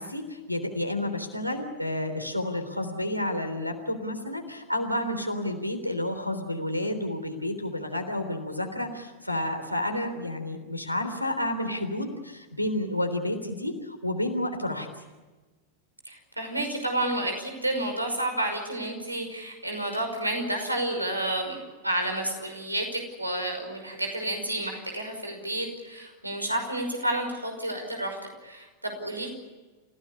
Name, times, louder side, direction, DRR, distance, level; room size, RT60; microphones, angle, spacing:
voice 1, 0.0-14.9, left 1 dB, 90° left, 4 dB, 3.5 m, -30 dB
voice 2, 16.1-29.3, right 1 dB, 85° right, 3 dB, 5.5 m, -30 dB
29.0 x 17.0 x 9.9 m, 1.3 s
figure-of-eight pair, 90°, 0 cm